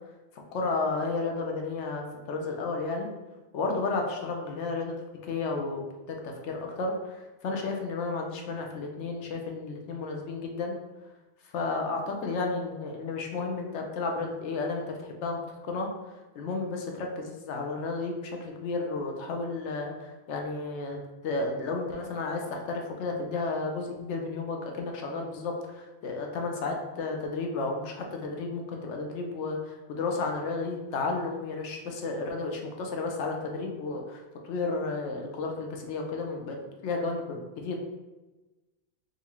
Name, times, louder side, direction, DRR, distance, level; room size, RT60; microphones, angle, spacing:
voice 1, 0.3-3.1 3.5-4.9 5.3-5.8 6.1-10.8 11.4-15.9 16.4-36.6 36.8-37.8, left 3 dB, 65° left, 2 dB, 0.8 m, -32 dB
3.9 x 2.5 x 2.8 m, 1.1 s
omnidirectional pair, 1.4 m